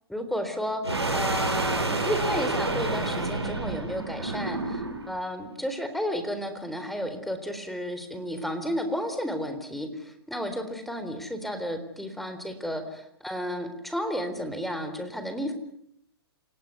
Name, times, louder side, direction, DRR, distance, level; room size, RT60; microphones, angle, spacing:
voice 1, 0.1-15.5, equal, ahead, 8 dB, 3.9 m, -32 dB
sound 1, 0.8-5.1, right 2 dB, 85° right, 7.2 m, -29 dB
28.5 x 18.0 x 9.4 m, 0.72 s
figure-of-eight pair, 115°, 13 cm